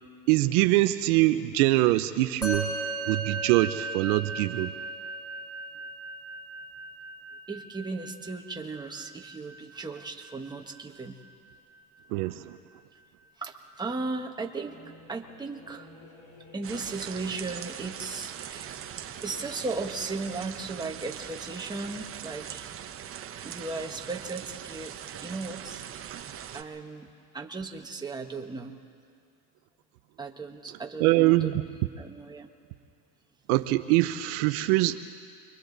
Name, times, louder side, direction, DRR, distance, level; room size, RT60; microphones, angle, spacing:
voice 1, 0.3-2.7 3.1-4.7 12.1-12.6 31.0-31.6 33.5-35.0, right 18 dB, 65° right, 10 dB, 0.9 m, -23 dB
Musical instrument, 2.4-12.0, right 2 dB, 5° left, 6.9 m, -38 dB
voice 2, 7.5-11.2 13.4-14.8 15.1-15.9 16.5-22.7 23.4-24.9 25.2-25.9 26.5-27.1 27.3-28.8 30.2-31.5 32.0-32.5, right 3 dB, 10° right, 1 dB, 1.4 m, -36 dB
sound 1, 14.6-20.6, left 3 dB, 80° left, 5.7 m, -53 dB
sound 2, 16.6-26.6, right 9 dB, 25° right, 1.0 m, -41 dB
29.5 x 23.5 x 4.1 m, 2.3 s
supercardioid pair, 120°, 48 cm